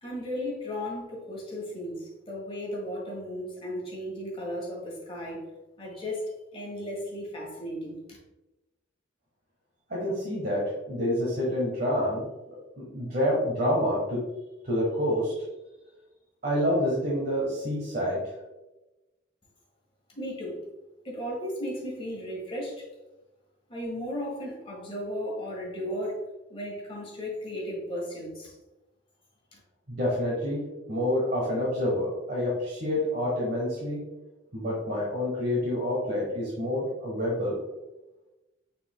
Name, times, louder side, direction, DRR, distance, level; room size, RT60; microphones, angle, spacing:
voice 1, 0.0-5.4 5.8-6.2 6.5-8.2 20.1-20.6 21.0-22.9 23.7-26.2 26.5-28.5 29.5-29.6, equal, 30° left, -2 dB, 1.6 m, -35 dB
voice 2, 9.9-12.3 12.8-14.2 14.6-15.3 16.4-18.2 29.9-34.0 34.5-37.6, left 1 dB, 55° right, -5 dB, 1.2 m, -28 dB
5.6 x 4.3 x 2.2 m, 1.0 s
head